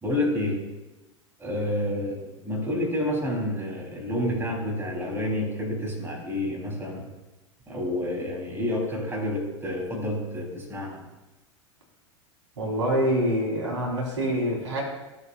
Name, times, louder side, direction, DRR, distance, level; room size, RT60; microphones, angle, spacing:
voice 1, 0.0-0.6 1.4-7.1 7.7-11.0, left 1 dB, 15° right, -1 dB, 3.1 m, -29 dB
voice 2, 12.6-14.8, equal, 75° right, -2 dB, 3.5 m, -25 dB
15.5 x 7.3 x 2.3 m, 1.1 s
figure-of-eight pair, 85°, 16 cm